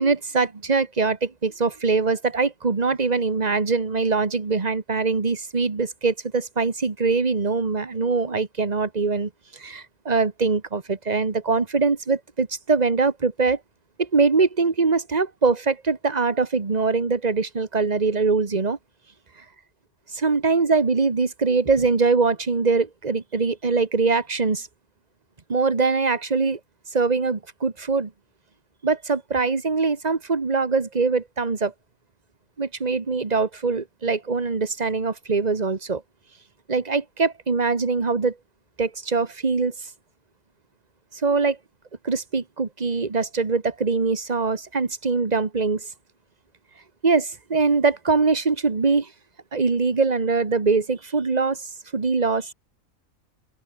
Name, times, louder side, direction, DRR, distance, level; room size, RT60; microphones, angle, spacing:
voice 1, 0.0-13.6 14.0-18.8 20.1-24.7 25.5-26.6 26.9-28.1 28.8-31.7 32.6-36.0 36.7-38.3 38.8-39.7 41.2-41.6 42.0-45.9 47.0-49.1 49.5-52.5, right 4 dB, 30° right, 1.6 m, -23 dB
omnidirectional pair, 1.4 m